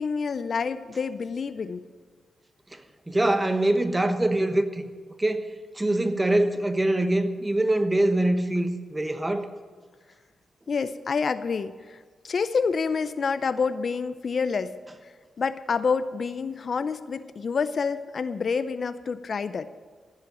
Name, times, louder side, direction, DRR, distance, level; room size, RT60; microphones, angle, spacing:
voice 1, 0.0-1.8 10.7-14.7 15.0-19.7, left 5 dB, 55° left, 13 dB, 0.5 m, -28 dB
voice 2, 3.1-4.8 5.2-5.5 5.8-9.5, right 1 dB, 15° right, 8 dB, 1.0 m, -24 dB
16.0 x 5.7 x 8.9 m, 1.5 s
cardioid pair, 80°, 0 cm